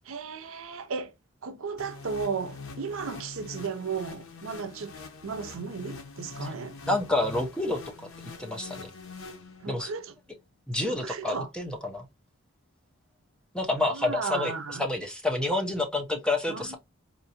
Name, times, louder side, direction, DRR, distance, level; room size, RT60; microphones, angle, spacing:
voice 1, 0.0-1.1 1.4-5.0 5.2-6.8 9.6-10.1 10.8-11.5 13.8-14.9 16.5-16.7, right 5 dB, 75° right, 0.6 m, -35 dB
sound 1, 1.8-9.9, left 4 dB, 80° left, 0.8 m, -44 dB
voice 2, 6.9-7.8 8.4-8.9 9.7-9.9 10.7-12.1 13.5-14.5 14.8-16.7, left 2 dB, 5° left, 0.7 m, -28 dB
4.2 x 2.6 x 2.7 m
head